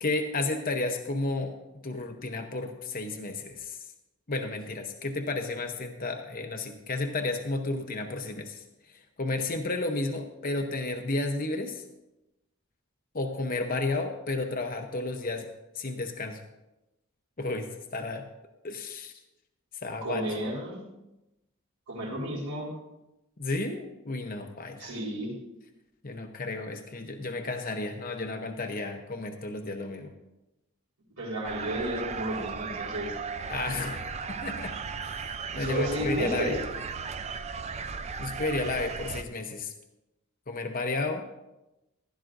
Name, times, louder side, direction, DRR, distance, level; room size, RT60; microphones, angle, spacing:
voice 1, 0.0-1.6 1.8-3.8 4.3-8.6 8.9-11.8 13.1-15.5 15.7-16.4 17.4-18.2 18.6-19.1 19.8-20.2 23.4-24.9 26.0-30.1 33.5-34.7 35.0-36.6 38.2-39.7 40.5-41.2, left 2 dB, 40° left, 4 dB, 0.8 m, -32 dB
voice 2, 20.0-20.8 21.9-22.7 24.8-25.3 31.2-33.1 35.5-36.6, right 1 dB, 80° right, -4 dB, 4.2 m, -32 dB
sound 1, 31.4-39.2, right 5 dB, 30° right, 0.4 m, -36 dB
15.5 x 12.0 x 2.6 m, 0.95 s
head